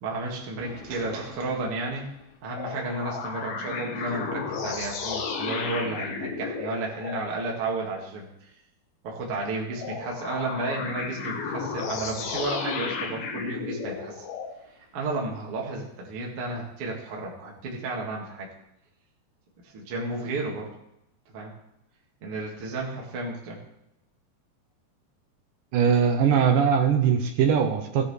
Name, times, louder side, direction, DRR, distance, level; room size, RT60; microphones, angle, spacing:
voice 1, 0.0-2.1 2.4-8.3 9.0-14.2 14.9-18.5 19.7-20.7 21.3-21.5 22.2-23.6, right 2 dB, 45° right, -2 dB, 2.3 m, -32 dB
sound 1, 0.6-2.2 2.5-7.3 9.7-14.6, left 5 dB, 70° left, 3.0 m, -34 dB
voice 2, 25.7-28.1, right 7 dB, 70° right, 5 dB, 2.2 m, -21 dB
16.5 x 9.2 x 3.3 m, 0.81 s
omnidirectional pair, 4.7 m